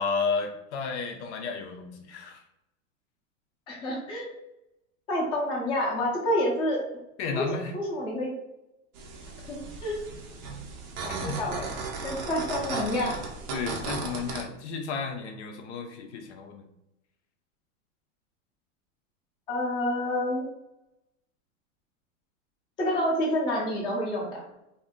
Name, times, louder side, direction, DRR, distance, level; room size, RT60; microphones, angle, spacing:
voice 1, 0.0-2.4 7.2-7.7 11.1-11.3 13.5-16.7, left 5 dB, 60° left, 4 dB, 0.6 m, -32 dB
voice 2, 3.7-4.3 5.1-6.8 7.3-7.4 7.7-8.3 9.5-10.0 11.0-11.7 12.0-13.1 19.5-20.5 22.8-24.4, left 1 dB, 15° left, -4 dB, 0.5 m, -28 dB
sound 1, 8.9-14.4, right 4 dB, 35° right, 0.5 m, -36 dB
2.6 x 2.6 x 3.5 m, 0.88 s
supercardioid pair, 160°, 39 cm